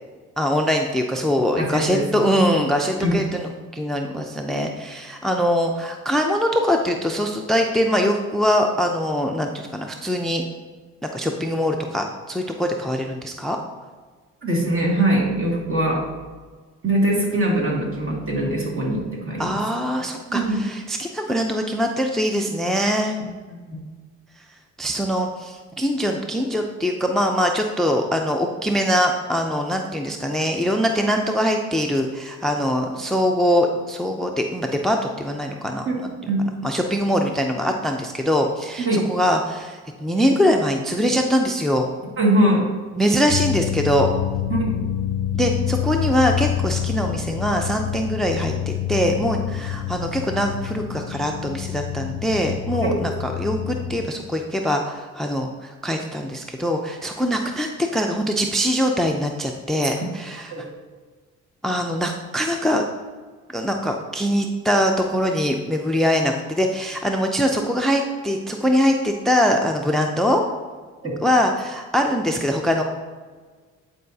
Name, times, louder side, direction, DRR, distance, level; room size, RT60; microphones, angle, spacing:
voice 1, 0.4-3.4 3.7-10.4 11.0-13.6 19.4-23.2 24.8-35.9 36.6-41.9 43.0-44.1 45.3-60.5 61.6-62.8 63.5-70.4 71.2-72.8, equal, ahead, 3 dB, 0.5 m, -22 dB
voice 2, 1.6-2.3 3.0-3.2 14.4-16.0 16.8-19.6 20.3-20.6 23.5-23.8 35.9-36.0 36.3-36.5 38.9-39.0 42.2-42.6 44.5-44.7 52.8-53.0 59.8-59.9 60.5-60.6 71.0-71.1, right 1 dB, 45° right, -2 dB, 2.1 m, -22 dB
sound 1, 43.3-54.1, left 11 dB, 60° left, 0.5 m, -27 dB
9.8 x 4.7 x 2.7 m, 1.5 s
cardioid pair, 90°, 30 cm